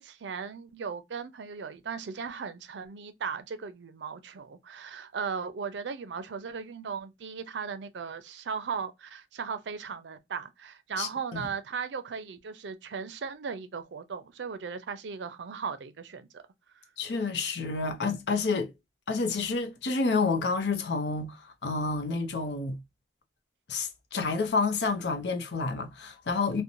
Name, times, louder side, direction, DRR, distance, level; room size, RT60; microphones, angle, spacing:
voice 1, 0.0-16.4, right 6 dB, 90° right, 0.5 m, -37 dB
voice 2, 11.0-11.5 17.0-18.7 19.1-22.8 23.7-26.6, left 4 dB, 75° left, 0.6 m, -29 dB
2.9 x 2.1 x 2.5 m
head